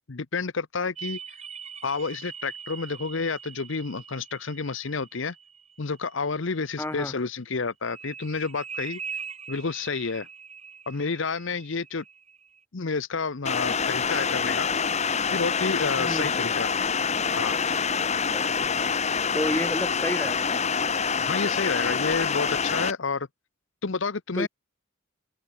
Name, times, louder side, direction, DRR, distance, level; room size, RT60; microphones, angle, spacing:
voice 1, 0.1-1.2 1.8-5.3 5.8-9.0 9.5-10.3 10.9-12.0 12.7-14.7 15.3-16.7 17.3-17.6 21.2-23.3 23.8-24.5, left 4 dB, 60° left, 0.8 m, -30 dB
sound 1, 1.0-6.5 7.8-12.6, right 7 dB, 30° right, 2.0 m, -42 dB
voice 2, 6.8-7.1 16.0-16.3 18.3-18.4 19.3-20.6 24.3-24.5, left 1 dB, 10° left, 1.3 m, -30 dB
sound 2, 13.5-22.9, left 6 dB, 30° left, 1.3 m, -26 dB
open air
head